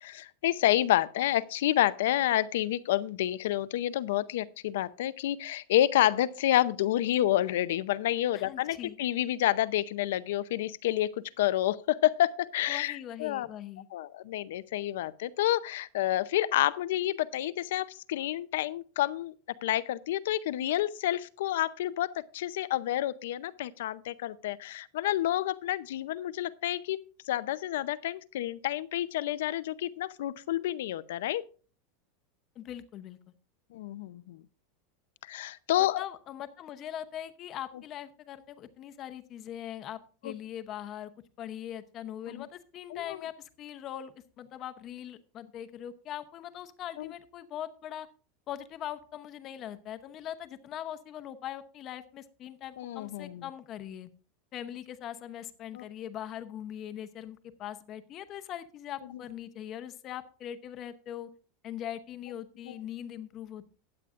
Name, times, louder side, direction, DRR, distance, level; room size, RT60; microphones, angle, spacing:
voice 1, 0.0-13.5 13.9-19.3 19.6-27.0 27.3-31.4 33.7-34.4 35.3-36.0 40.2-40.3 42.3-42.5 42.9-43.2 47.0-47.1 52.8-53.4 55.7-55.8 62.7-62.8, left 13 dB, 75° left, 0.6 m, -29 dB
voice 2, 8.3-9.0 12.7-13.9 32.6-33.2 35.8-41.1 41.4-48.1 48.5-54.1 54.5-61.3 61.6-63.7, left 11 dB, 30° left, 0.8 m, -41 dB
15.5 x 9.8 x 2.5 m
supercardioid pair, 170°, 0 cm